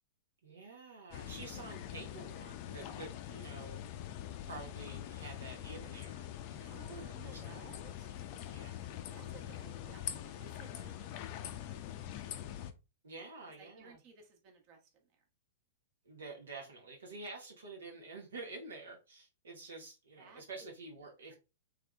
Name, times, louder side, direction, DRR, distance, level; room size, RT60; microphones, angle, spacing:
voice 1, 0.4-3.8 4.5-7.6 8.5-8.8 13.0-14.0 16.0-21.3, right 3 dB, 70° right, 0.9 m, -49 dB
sound 1, 1.1-12.7, left 11 dB, 45° left, 0.4 m, -44 dB
voice 2, 6.7-8.1 9.1-12.1 13.6-15.2 20.2-20.7 21.3-21.4, right 5 dB, 40° right, 1.1 m, -57 dB
3.5 x 3.2 x 2.3 m
figure-of-eight pair, 105°, 0 cm